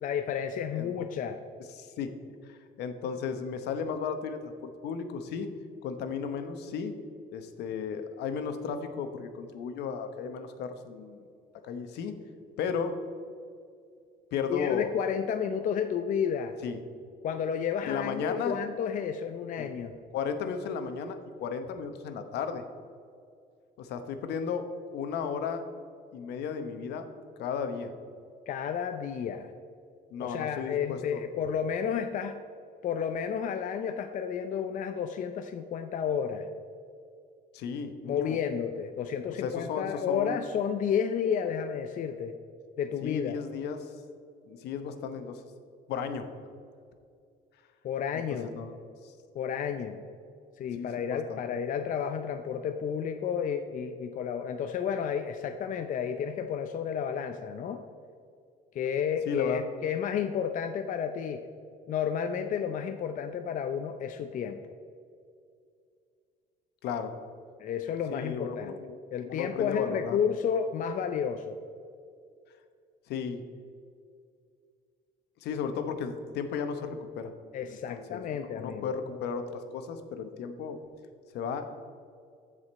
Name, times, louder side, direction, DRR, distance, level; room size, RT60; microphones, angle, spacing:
voice 1, 0.0-1.4 14.5-16.6 17.2-19.9 28.5-29.5 30.2-32.4 32.8-36.5 38.0-42.3 42.8-43.4 47.8-48.5 49.3-50.0 50.6-57.8 58.7-61.4 61.9-64.6 67.6-68.7 69.1-71.6 77.5-79.2, left 7 dB, 50° left, 7 dB, 0.5 m, -31 dB
voice 2, 1.7-2.1 2.5-5.5 5.8-6.9 7.3-11.2 11.6-12.1 12.6-12.9 14.3-15.0 16.6-16.8 17.8-18.5 19.6-19.7 20.1-22.6 23.8-25.6 26.1-27.0 27.4-27.9 30.1-31.2 37.5-38.4 39.4-40.4 43.0-43.9 44.5-45.4 45.9-46.3 48.1-48.7 49.0-49.1 50.8-51.6 59.3-59.7 66.8-67.1 68.1-69.0 69.2-70.2 73.1-73.4 75.4-77.3 77.7-80.8 81.3-81.7, left 6 dB, 80° left, 8 dB, 0.9 m, -34 dB
14.0 x 5.0 x 4.2 m, 2.3 s
cardioid pair, 110°, 17 cm